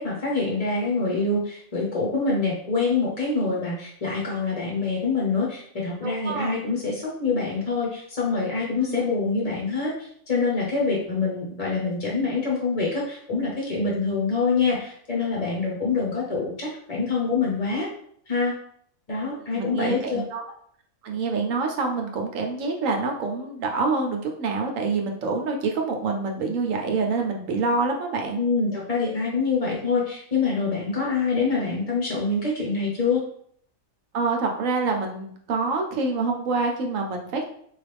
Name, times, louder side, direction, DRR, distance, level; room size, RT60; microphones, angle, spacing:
voice 1, 0.0-17.9 18.3-18.6 19.1-20.2 28.4-33.2, left 4 dB, 35° left, -4 dB, 0.7 m, -25 dB
voice 2, 6.0-6.5 8.8-9.0 19.3-20.4 21.0-28.4 34.1-37.5, right 4 dB, 75° right, 2 dB, 1.1 m, -26 dB
4.2 x 2.4 x 3.3 m, 0.63 s
omnidirectional pair, 1.4 m